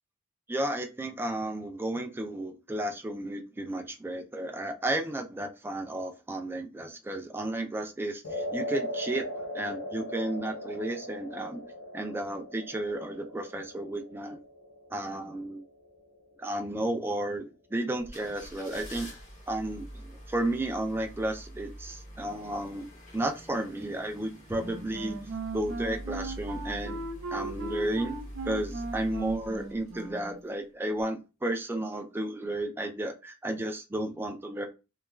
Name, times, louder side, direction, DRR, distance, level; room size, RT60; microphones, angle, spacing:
voice 1, 0.5-9.2 9.5-11.6 11.9-14.4 14.9-15.7 16.4-19.1 19.5-22.9 23.1-25.2 25.5-27.0 27.3-28.2 28.5-34.7, right 1 dB, 10° right, 4 dB, 0.4 m, -33 dB
sound 1, 8.2-16.6, left 1 dB, 70° left, 0.6 m, -39 dB
sound 2, 18.0-30.5 30.9-31.0, equal, 40° left, 0.9 m, -45 dB
Wind instrument woodwind instrument, 24.6-30.4, right 3 dB, 75° right, 0.5 m, -38 dB
3.0 x 2.3 x 2.3 m, 0.29 s
head